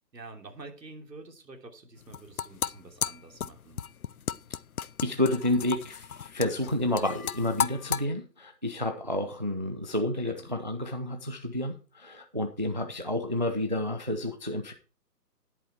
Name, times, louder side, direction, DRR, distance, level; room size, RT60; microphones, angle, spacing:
voice 1, 0.1-3.8 10.2-10.5, right 3 dB, 90° right, 3 dB, 3.2 m, -47 dB
sound 1, 2.0-8.0, left 8 dB, 60° left, 0.6 m, -34 dB
voice 2, 5.0-14.7, left 1 dB, 30° right, 6 dB, 0.6 m, -30 dB
10.5 x 8.6 x 4.5 m, 0.37 s
hypercardioid pair, 175°, 49 cm